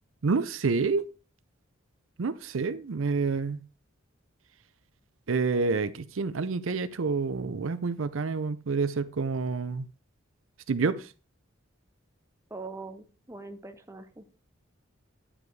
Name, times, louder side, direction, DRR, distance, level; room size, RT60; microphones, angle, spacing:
voice 1, 0.2-1.1 2.2-3.6 5.3-9.9 10.7-11.1, right 4 dB, 80° right, 0.6 m, -28 dB
voice 2, 12.5-14.2, right 3 dB, 15° right, 0.7 m, -42 dB
10.0 x 4.9 x 4.6 m
head